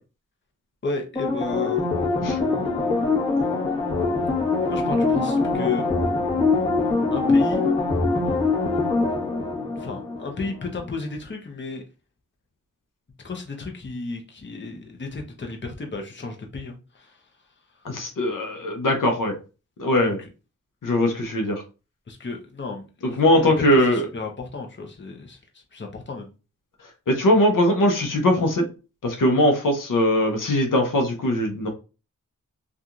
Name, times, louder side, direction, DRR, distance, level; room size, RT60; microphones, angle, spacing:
voice 1, 0.8-1.8 2.4-3.2 4.7-5.9 7.1-7.6 9.6-11.8 13.2-17.2 20.0-20.3 22.1-23.7 23.9-25.4 25.7-26.3, left 3 dB, 35° left, 2 dB, 0.8 m, -34 dB
sound 1, 1.2-10.5 10.9-11.0, left 3 dB, 15° left, 1.2 m, -23 dB
voice 2, 17.8-19.4 19.8-20.2 20.8-21.6 23.2-24.1 27.1-28.7 29.0-31.7, left 1 dB, 70° left, 2 dB, 0.8 m, -20 dB
2.7 x 2.5 x 2.4 m, 0.31 s
cardioid pair, 40°, 33 cm